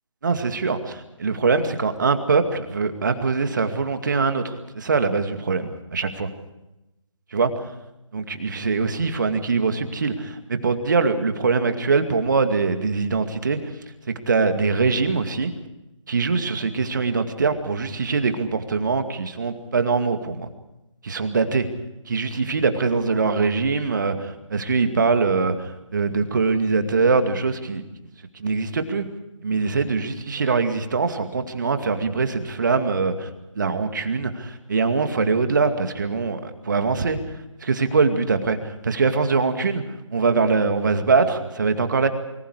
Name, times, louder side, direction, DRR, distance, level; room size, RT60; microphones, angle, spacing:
voice 1, 0.2-6.3 7.3-7.5 8.1-13.6 14.1-15.5 16.1-20.5 21.0-21.7 22.1-27.8 28.4-29.1 29.4-33.3 33.6-37.2 37.6-39.8 40.1-42.1, right 4 dB, 35° right, 8 dB, 2.3 m, -23 dB
27.0 x 24.5 x 4.9 m, 0.94 s
figure-of-eight pair, 155°, 17 cm